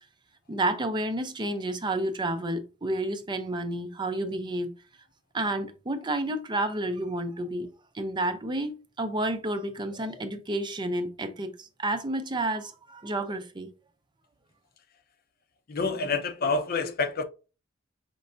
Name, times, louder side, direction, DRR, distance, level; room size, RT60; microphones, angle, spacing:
voice 1, 0.5-4.7 5.3-7.7 7.9-13.7, right 1 dB, 25° right, 0.5 m, -30 dB
voice 2, 15.7-17.2, left 4 dB, 50° left, 0.6 m, -27 dB
5.2 x 3.2 x 2.5 m
head